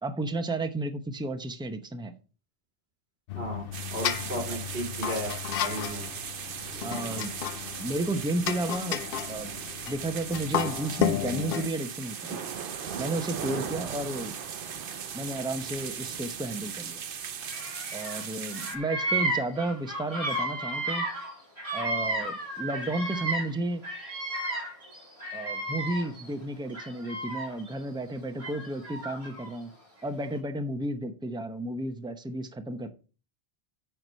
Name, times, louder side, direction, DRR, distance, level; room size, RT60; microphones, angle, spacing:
voice 1, 0.0-2.1 4.4-4.5 6.8-7.3 7.8-9.6 9.9-12.4 13.0-14.3 15.1-17.0 17.9-21.1 21.7-23.8 25.3-29.7 30.0-32.9, right 2 dB, 5° right, 7 dB, 0.7 m, -32 dB
sound 1, 3.3-11.7, left 10 dB, 70° left, 0.7 m, -33 dB
voice 2, 3.3-6.1, equal, 80° right, 3 dB, 2.7 m, -35 dB
sound 2, 3.7-18.8, right 7 dB, 60° right, 0.9 m, -38 dB
Bird vocalization bird call bird song, 17.4-18.2 18.5-23.6 23.8-26.2 26.7-27.7 28.4-29.5, right 2 dB, 35° right, 3.4 m, -33 dB
9.2 x 4.8 x 5.5 m, 0.36 s
omnidirectional pair, 1.1 m